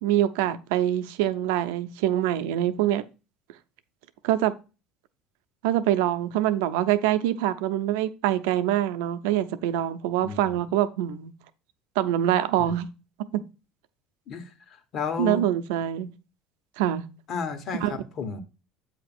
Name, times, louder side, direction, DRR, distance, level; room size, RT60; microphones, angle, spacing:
voice 1, 0.0-3.0 4.2-4.5 5.6-11.3 12.0-12.9 13.3-13.4 15.2-16.1 16.8-17.0 17.8-17.9, right 12 dB, 85° right, 0.6 m, -24 dB
voice 2, 10.2-10.6 12.6-12.7 14.3-15.5 17.3-18.4, left 5 dB, 45° left, 1.3 m, -33 dB
8.1 x 2.9 x 6.0 m
cardioid pair, 125°, 0 cm